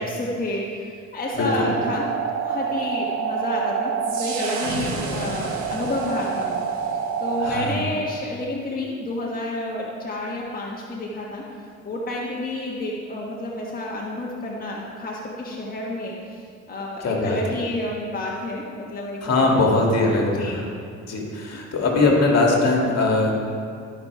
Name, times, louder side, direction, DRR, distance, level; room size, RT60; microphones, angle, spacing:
voice 1, 0.0-2.1 2.3-6.6 7.2-20.7, left 1 dB, 30° left, -3 dB, 1.4 m, -30 dB
voice 2, 1.4-1.7 7.4-7.8 17.0-17.4 19.2-20.6 21.0-23.3, left 2 dB, 55° left, -1 dB, 2.0 m, -21 dB
sound 1, 1.4-7.7, right 6 dB, 80° right, 1.4 m, -27 dB
12.5 x 5.7 x 4.7 m, 2.3 s
cardioid pair, 90°, 30 cm